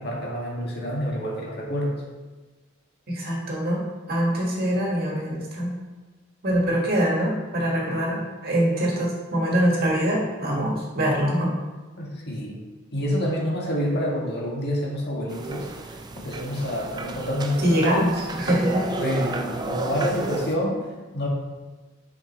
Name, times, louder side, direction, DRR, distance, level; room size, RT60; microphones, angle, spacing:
voice 1, 0.0-2.0 12.0-12.6 12.9-17.8 19.0-20.8 21.1-21.3, equal, 55° left, -2 dB, 1.5 m, -28 dB
voice 2, 3.1-3.8 4.1-5.7 6.4-11.5 17.6-18.8, equal, 50° right, -3 dB, 1.7 m, -23 dB
sound 1, 15.3-20.6, right 2 dB, 20° right, 0.4 m, -32 dB
6.3 x 5.2 x 3.2 m, 1.3 s
head